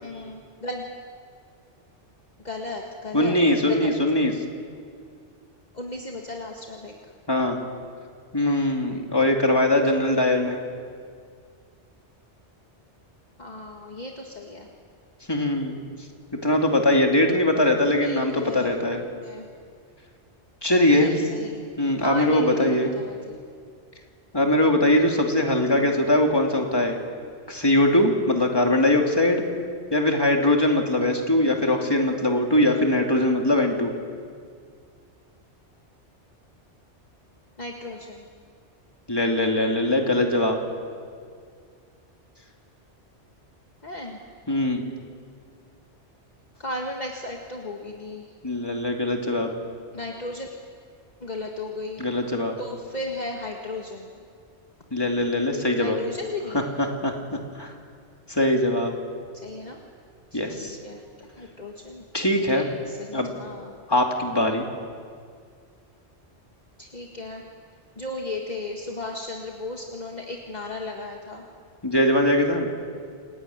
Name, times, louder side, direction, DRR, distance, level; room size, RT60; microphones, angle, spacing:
voice 1, 0.0-0.9 2.4-3.4 3.7-3.9 5.7-6.9 13.4-14.7 18.0-18.7 19.2-19.5 20.9-21.6 22.0-23.4 25.7-26.0 31.4-31.6 32.6-32.9 37.6-38.2 43.8-44.2 46.6-48.3 49.9-50.5 51.2-52.1 52.6-54.2 55.8-56.7 59.4-59.8 60.3-62.1 62.5-63.8 66.8-67.4 68.0-71.5, left 2 dB, 40° left, 0 dB, 1.9 m, -35 dB
voice 2, 3.1-4.3 7.3-7.6 8.3-10.6 15.3-15.8 16.3-19.0 20.6-21.1 21.8-22.9 24.3-27.0 27.5-29.4 29.9-33.9 39.1-40.6 44.5-44.8 48.4-49.5 52.0-52.6 54.9-56.0 56.8-57.7 58.3-58.9 60.3-60.8 62.1-62.7 63.1-63.3 63.9-64.7 71.8-72.7, left 1 dB, 20° left, 1 dB, 2.7 m, -21 dB
28.5 x 16.5 x 9.5 m, 2.1 s
omnidirectional pair, 1.2 m